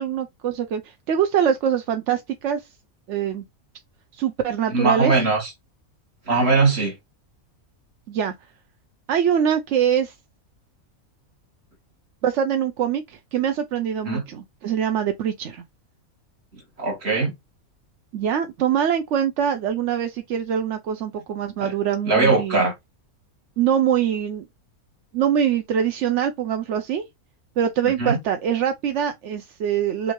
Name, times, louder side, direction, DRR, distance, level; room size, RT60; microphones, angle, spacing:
voice 1, 0.0-2.7 3.1-3.4 4.1-5.1 8.1-8.3 9.1-10.1 12.2-15.6 18.1-22.6 23.6-24.5 25.1-27.0 27.6-30.1, right 8 dB, 65° right, 0.9 m, -23 dB
voice 2, 4.7-5.5 6.3-7.0 14.1-14.2 16.5-17.3 21.6-21.7 22.1-22.7 28.0-28.2, right 3 dB, 45° right, 1.9 m, -20 dB
5.9 x 2.7 x 3.0 m
omnidirectional pair, 1.5 m